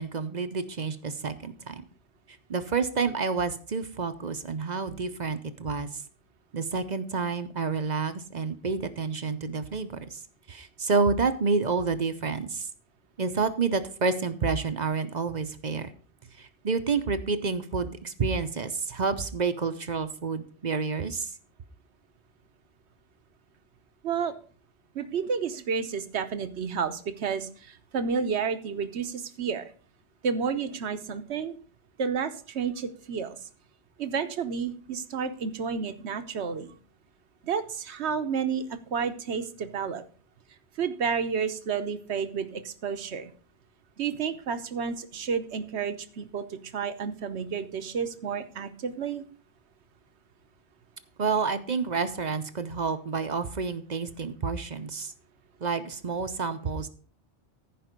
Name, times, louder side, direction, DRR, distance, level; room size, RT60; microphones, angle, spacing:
voice 1, 0.0-1.8 2.5-6.0 6.5-10.2 10.5-12.7 13.2-15.9 16.4-21.3 51.2-55.1 55.6-56.9, right 4 dB, 45° right, 10 dB, 0.8 m, -29 dB
voice 2, 24.9-29.7 30.2-31.6 32.0-33.4 34.0-36.7 37.4-40.0 40.8-43.3 44.0-49.2, right 6 dB, 70° right, 10 dB, 1.2 m, -31 dB
15.0 x 5.1 x 5.1 m, 0.42 s
omnidirectional pair, 1.2 m